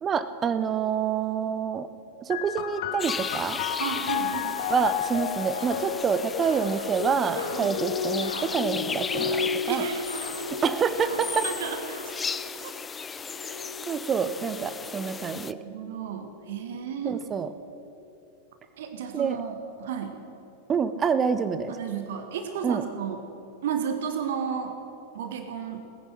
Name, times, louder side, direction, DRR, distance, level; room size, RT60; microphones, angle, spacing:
voice 1, 0.0-1.9 2.2-3.6 4.7-9.8 10.6-11.4 13.5-13.6 13.9-15.6 17.0-17.5 19.1-19.4 20.7-21.7 22.6-22.8, right 6 dB, 25° right, 12 dB, 0.8 m, -27 dB
sound 1, 2.3-15.5 16.4-17.2, left 7 dB, 50° left, 0.8 m, -34 dB
sound 2, 3.0-15.5, left 5 dB, 15° left, 0.4 m, -36 dB
voice 2, 3.8-4.6 7.5-7.7 9.7-10.0 11.3-12.0 12.3-12.4 12.6-12.7 15.6-17.2 18.8-20.2 21.7-23.2 23.6-24.7 25.1-25.8, right 7 dB, 55° right, 7 dB, 1.3 m, -33 dB
sound 3, 3.9-4.1 4.5-12.0, equal, 90° left, 2.2 m, -43 dB
18.0 x 9.9 x 6.5 m, 2.8 s
figure-of-eight pair, 90°, 0 cm